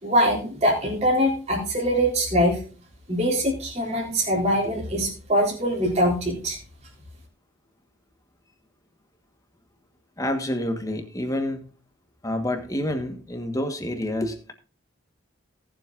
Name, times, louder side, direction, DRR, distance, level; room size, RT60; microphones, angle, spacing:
voice 1, 0.0-2.6 3.1-6.6, equal, 35° right, -3 dB, 3.8 m, -23 dB
voice 2, 10.2-11.6 12.2-14.5, left 1 dB, 15° left, 6 dB, 1.3 m, -28 dB
18.5 x 7.4 x 2.5 m, 0.40 s
head